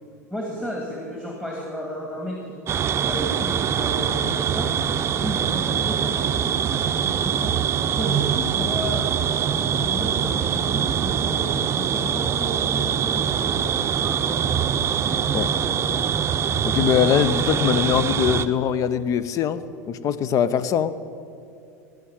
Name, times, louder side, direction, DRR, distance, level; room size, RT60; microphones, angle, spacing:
voice 1, 0.3-4.7 5.1-7.6 7.9-9.1 9.5-11.5 11.7-14.5 14.9-16.0, equal, 10° left, -2 dB, 2.3 m, -33 dB
sound 1, 2.7-18.5, right 8 dB, 30° right, 0.6 m, -23 dB
voice 2, 16.6-20.9, left 8 dB, 40° left, 15 dB, 0.7 m, -22 dB
17.5 x 6.5 x 8.6 m, 2.5 s
hypercardioid pair, 80°, 9 cm